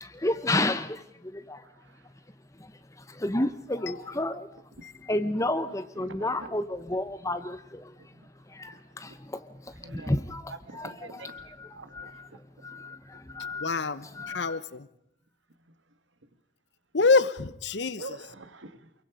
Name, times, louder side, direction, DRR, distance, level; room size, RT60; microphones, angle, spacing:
voice 1, 0.0-1.6 2.6-2.7 3.1-4.5 5.1-7.9 8.5-9.5 9.9-10.4 10.8-10.9 11.2-11.7 11.9-12.2 12.6-13.8 14.1-14.6, left 1 dB, 15° left, 0.8 m, -31 dB
voice 2, 1.6-2.1 4.0-4.3 4.7-4.9 5.4-5.5 6.0-6.6 8.0-9.2 9.7-12.7 15.7-15.8 16.2-16.3 18.0-18.9, right 2 dB, 80° right, 1.8 m, -47 dB
voice 3, 13.6-14.1 14.3-14.9 16.9-18.0, left 4 dB, 65° left, 1.0 m, -26 dB
28.0 x 23.0 x 5.0 m
head